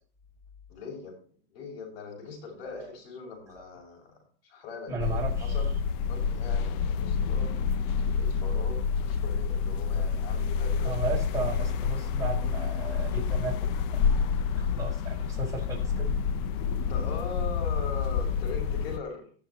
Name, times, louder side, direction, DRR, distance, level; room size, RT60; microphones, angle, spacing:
voice 1, 0.7-1.2 1.5-7.6 8.0-11.2 16.6-19.3, left 5 dB, 80° left, 0 dB, 6.6 m, -41 dB
voice 2, 4.9-5.5 10.8-13.6 14.6-16.1, right 3 dB, 10° right, -4 dB, 5.2 m, -35 dB
sound 1, 5.0-19.0, left 6 dB, 50° left, 0.9 m, -28 dB
17.5 x 7.4 x 3.0 m, 0.40 s
supercardioid pair, 145°, 30 cm